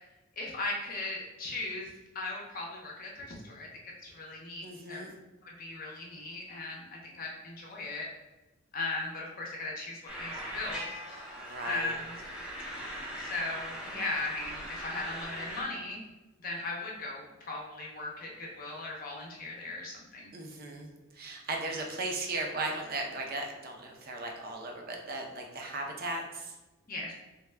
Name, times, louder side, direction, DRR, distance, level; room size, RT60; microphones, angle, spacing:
voice 1, 0.4-1.9 2.1-5.1 5.4-8.1 8.7-11.2 11.6-12.1 13.2-16.0 16.4-20.3 26.9-27.1, left 2 dB, 45° left, -2 dB, 0.6 m, -38 dB
voice 2, 4.6-5.1 11.4-12.0 20.3-26.5, right 2 dB, 45° right, 2 dB, 0.5 m, -37 dB
sound 1, 10.1-15.6, equal, 5° right, 0.6 m, -40 dB
3.4 x 2.2 x 3.2 m, 1.1 s
head